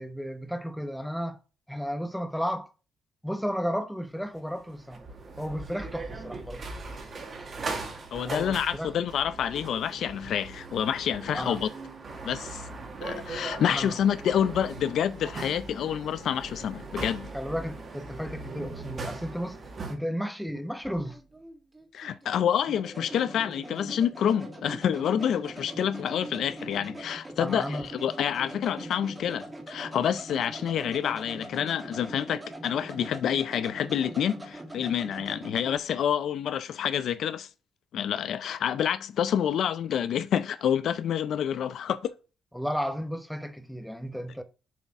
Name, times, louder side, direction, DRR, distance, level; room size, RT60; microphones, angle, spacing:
voice 1, 0.0-1.4 1.7-2.7 3.2-5.0 5.4-6.6 8.1-8.9 11.3-11.6 13.7-14.0 17.3-19.6 19.9-21.2 27.4-27.9 42.5-44.4, equal, ahead, 0.8 m, -33 dB
sound 1, 4.4-19.9, right 3 dB, 45° right, 1.8 m, -39 dB
voice 2, 8.1-11.7 12.2-12.7 13.0-17.3 21.9-37.5 37.9-42.1, left 9 dB, 70° left, 0.4 m, -28 dB
sound 2, 20.5-35.8, right 1 dB, 20° right, 1.9 m, -42 dB
7.3 x 4.0 x 3.5 m
cardioid pair, 90°, 0 cm